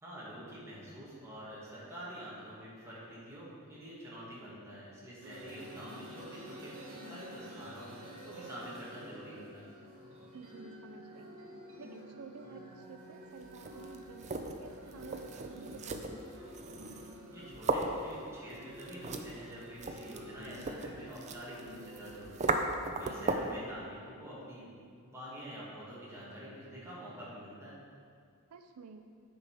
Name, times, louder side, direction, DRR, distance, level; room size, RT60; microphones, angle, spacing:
voice 1, 0.0-6.7 7.1-7.9 8.2-9.7 17.3-22.6 23.0-24.7 25.0-27.8, equal, 15° right, -8 dB, 2.2 m, -47 dB
sound 1, 5.2-22.3, equal, 65° right, 2.0 m, -50 dB
voice 2, 10.3-11.3 11.8-16.3 23.0-23.2 28.5-29.1, right 5 dB, 85° right, 7 dB, 0.4 m, -51 dB
sound 2, 13.4-23.6, right 3 dB, 30° right, 0.5 m, -37 dB
9.6 x 5.3 x 4.9 m, 2.2 s
head